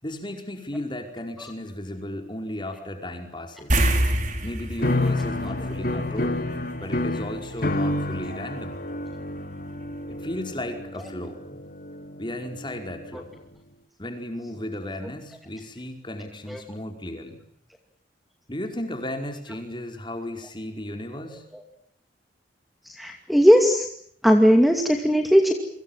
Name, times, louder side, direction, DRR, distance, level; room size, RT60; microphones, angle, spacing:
voice 1, 0.0-3.8 4.4-6.5 6.8-8.8 10.1-11.4 12.2-13.3 14.0-17.4 18.5-21.4, left 1 dB, 25° left, 5 dB, 5.1 m, -35 dB
sound 1, 3.7-6.5 6.8-7.0 9.8-9.9 10.3-10.4, right 1 dB, 45° right, 4.9 m, -25 dB
sound 2, 4.8-13.1, left 1 dB, 50° left, 3.0 m, -29 dB
voice 2, 23.0-23.9 24.2-25.5, equal, ahead, 4 dB, 2.4 m, -17 dB
29.0 x 25.0 x 7.4 m, 0.64 s
head